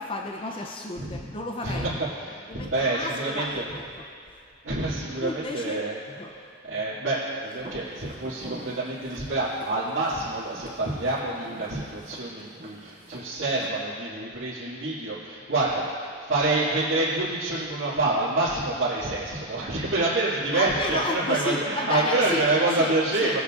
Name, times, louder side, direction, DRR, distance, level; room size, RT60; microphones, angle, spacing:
voice 1, 0.0-2.0 2.5-3.8 5.2-6.3 20.5-22.5 22.8-22.9 23.2-23.4, left 2 dB, 25° left, 2 dB, 0.5 m, -32 dB
voice 2, 1.0-1.3 1.6-3.7 4.6-6.0 6.3-23.4, right 2 dB, 85° right, -12 dB, 2.0 m, -27 dB
Walk footsteps, 7.6-13.7, right 1 dB, 45° right, 1.9 m, -45 dB
18.5 x 8.1 x 2.4 m, 2.4 s
head